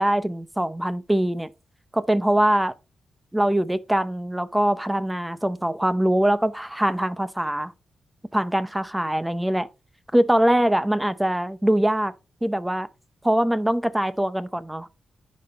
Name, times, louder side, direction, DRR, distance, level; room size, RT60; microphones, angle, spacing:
voice 1, 0.0-1.5 1.9-2.7 3.3-7.7 8.3-9.7 10.1-12.1 12.4-12.9 13.2-14.9, right 1 dB, 10° right, 0.7 m, -22 dB
10.5 x 5.3 x 4.1 m
cardioid pair, 90°, 0 cm